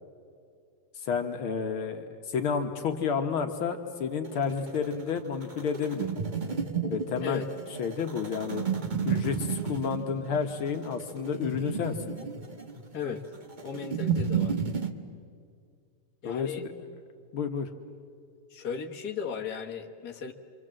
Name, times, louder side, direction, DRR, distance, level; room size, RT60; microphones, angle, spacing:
voice 1, 1.0-6.1 6.9-7.4 7.8-8.6 9.0-12.1 16.2-16.7 17.3-17.7, left 6 dB, 75° left, 6 dB, 2.1 m, -31 dB
sound 1, 4.2-14.9, right 6 dB, 30° right, 1.0 m, -32 dB
voice 2, 13.6-14.5 16.2-16.6 18.5-20.3, left 7 dB, 50° left, 1 dB, 2.1 m, -36 dB
27.5 x 25.5 x 7.6 m, 2.3 s
omnidirectional pair, 2.3 m